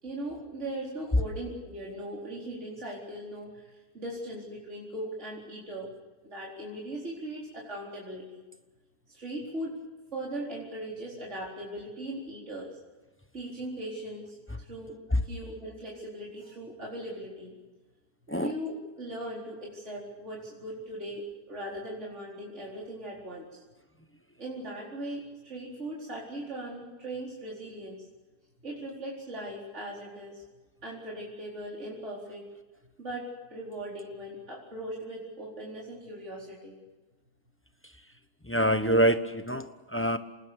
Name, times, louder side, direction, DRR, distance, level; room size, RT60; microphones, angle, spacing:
voice 1, 0.0-5.9 6.2-8.4 9.1-9.8 10.1-12.8 13.3-14.9 15.2-17.6 18.3-23.6 24.4-28.1 28.6-30.4 30.8-32.4 33.0-36.8, right 1 dB, 45° right, -4 dB, 4.7 m, -39 dB
voice 2, 38.4-40.2, equal, 10° left, 9 dB, 0.8 m, -25 dB
27.5 x 20.0 x 6.9 m, 1.2 s
omnidirectional pair, 1.7 m